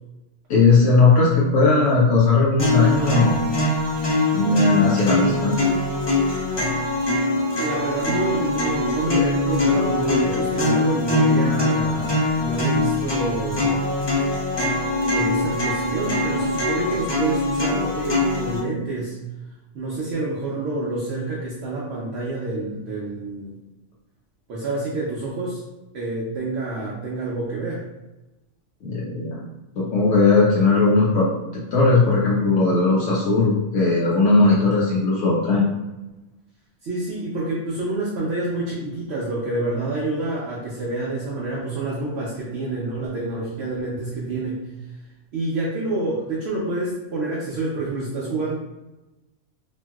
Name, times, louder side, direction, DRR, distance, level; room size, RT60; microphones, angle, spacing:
voice 1, 0.5-3.4 4.3-5.6 28.8-29.4 29.8-35.6, left 3 dB, 80° left, -5 dB, 0.9 m, -18 dB
sound 1, 2.6-18.6, left 2 dB, 40° left, 0.3 m, -22 dB
voice 2, 7.6-13.8 15.0-19.2 19.7-23.6 24.5-25.6 25.9-27.9 36.8-44.7 45.3-48.5, right 2 dB, 65° right, -6 dB, 0.8 m, -27 dB
2.9 x 2.6 x 2.2 m, 1.0 s
omnidirectional pair, 1.2 m